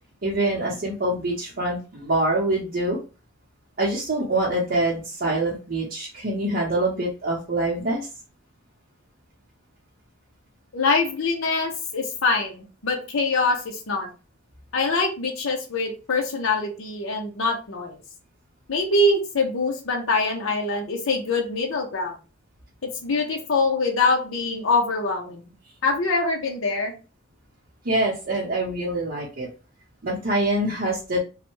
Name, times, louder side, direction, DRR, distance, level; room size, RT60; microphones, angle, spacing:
voice 1, 0.2-3.0 3.8-8.1 27.8-29.5 30.0-31.2, right 1 dB, 45° right, -6 dB, 0.7 m, -25 dB
voice 2, 10.7-14.1 14.7-18.0 18.7-22.1 22.8-25.5 25.8-26.9, left 3 dB, 65° left, 1 dB, 0.6 m, -24 dB
3.1 x 2.1 x 3.0 m, 0.33 s
head